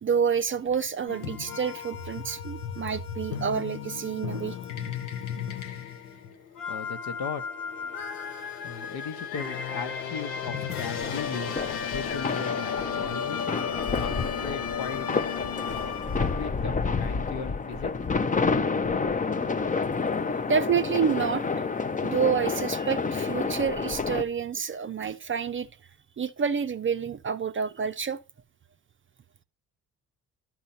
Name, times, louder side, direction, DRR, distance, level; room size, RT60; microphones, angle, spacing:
voice 1, 0.0-4.6 20.5-21.5 22.0-25.7 26.2-28.2, right 6 dB, 30° right, 0.6 m, -28 dB
sound 1, 1.1-16.5, left 7 dB, 85° left, 0.8 m, -34 dB
voice 2, 6.7-7.4 8.6-13.5 14.0-14.1 14.4-15.1 15.6-16.1 16.3-16.7 17.0-18.2, left 6 dB, 60° left, 1.1 m, -37 dB
sound 2, 11.0-24.2, left 4 dB, 20° left, 0.6 m, -29 dB
11.5 x 5.9 x 2.7 m
hypercardioid pair, 45°, 42 cm